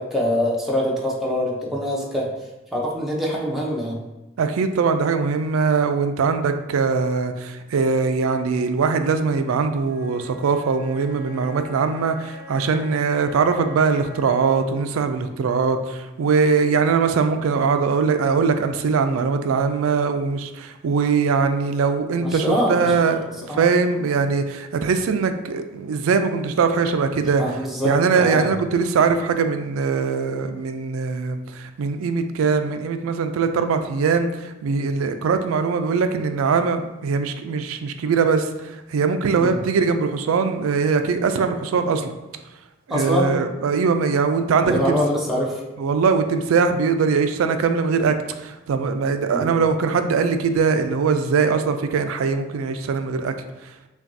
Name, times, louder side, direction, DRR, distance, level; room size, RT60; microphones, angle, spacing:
voice 1, 0.0-2.3 2.7-4.0 22.2-23.1 23.5-23.7 27.4-28.4 39.4-39.6 42.9-43.4 44.6-45.6 49.3-49.5, equal, ahead, -4 dB, 0.6 m, -24 dB
voice 2, 4.4-27.4 27.8-42.1 42.9-45.0 45.8-53.3 53.6-53.7, right 5 dB, 90° right, 8 dB, 0.4 m, -21 dB
Wind instrument woodwind instrument, 9.8-14.8, left 3 dB, 40° left, 0.9 m, -42 dB
5.7 x 2.3 x 2.6 m, 1.0 s
head